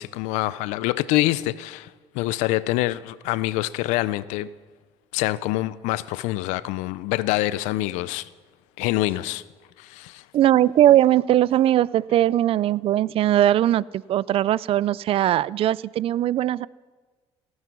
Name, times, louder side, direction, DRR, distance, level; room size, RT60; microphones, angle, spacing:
voice 1, 0.0-4.5 5.1-8.3 8.8-9.4 9.8-10.2, left 16 dB, 85° left, 18 dB, 0.5 m, -25 dB
voice 2, 10.3-16.7, right 12 dB, 55° right, 22 dB, 0.4 m, -20 dB
18.0 x 9.6 x 6.1 m, 1.4 s
supercardioid pair, 90°, 12 cm